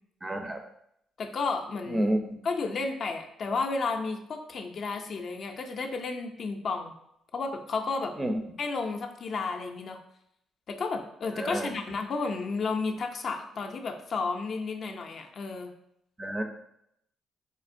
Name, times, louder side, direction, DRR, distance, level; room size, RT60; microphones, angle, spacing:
voice 1, 0.2-0.6 1.9-2.3 8.2-8.4 11.4-11.7 16.2-16.4, right 1 dB, 20° right, 5 dB, 0.4 m, -29 dB
voice 2, 1.2-2.1 2.4-6.9 7.3-8.3 8.6-10.0 10.7-15.7, left 4 dB, 50° left, 4 dB, 0.4 m, -32 dB
4.3 x 2.7 x 2.5 m, 0.76 s
cardioid pair, 120°, 0 cm